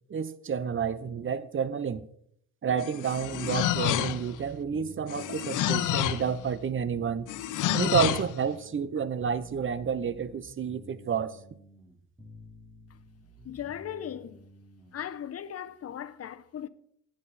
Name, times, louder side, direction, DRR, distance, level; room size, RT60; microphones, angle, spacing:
voice 1, 0.1-2.0 2.6-7.3 7.7-11.3, right 7 dB, 40° right, 0.9 m, -30 dB
sound 1, 2.8-4.4 5.1-6.3 7.3-8.3, left 12 dB, 85° left, 0.9 m, -28 dB
sound 2, 3.2-15.1, equal, 10° right, 4.0 m, -51 dB
voice 2, 13.4-14.4 14.9-16.7, left 9 dB, 55° left, 1.0 m, -38 dB
17.5 x 9.9 x 4.2 m
cardioid pair, 90°, 30 cm